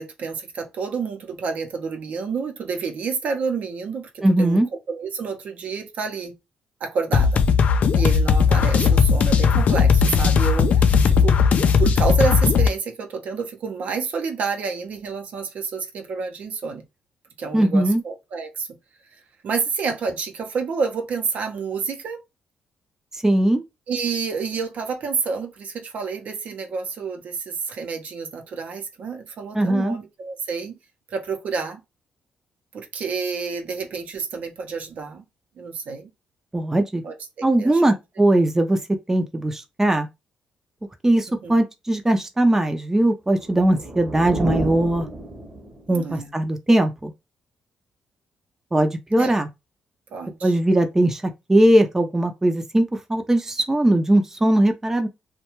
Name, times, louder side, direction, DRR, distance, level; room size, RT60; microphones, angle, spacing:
voice 1, 0.0-4.6 4.9-6.3 6.8-7.4 7.9-11.4 11.8-16.8 17.4-18.7 19.1-22.2 23.9-30.8 31.1-31.8 32.7-35.2 35.6-36.1 37.0-38.0 41.3-41.6 45.9-46.3 49.2-49.3 50.1-50.6, right 5 dB, 65° right, 0.7 m, -29 dB
voice 2, 4.2-4.7 17.5-18.0 23.2-23.6 29.5-30.0 36.5-37.0 37.4-38.8 39.1-40.1 41.0-45.1 45.9-47.1 48.7-49.5 50.4-51.2 51.5-55.1, right 1 dB, 15° right, 0.5 m, -19 dB
sound 1, 7.1-12.7, left 6 dB, 60° left, 0.4 m, -17 dB
sound 2, 43.4-46.0, right 2 dB, 35° right, 0.9 m, -31 dB
2.3 x 2.2 x 3.0 m
supercardioid pair, 60°, 3 cm